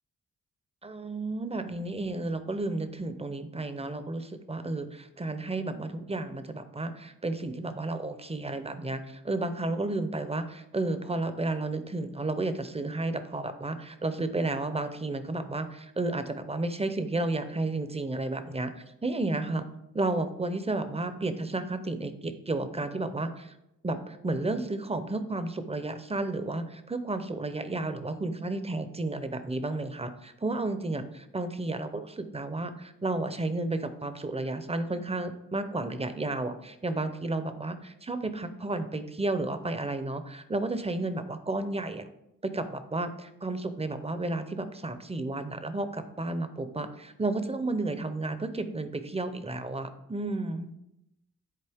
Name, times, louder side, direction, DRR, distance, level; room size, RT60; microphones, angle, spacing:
voice 1, 0.8-19.6 19.9-23.5 23.8-42.1 42.4-50.7, right 2 dB, 20° right, 10 dB, 0.6 m, -32 dB
9.9 x 4.1 x 3.5 m, 0.85 s
wide cardioid pair, 80°, 33 cm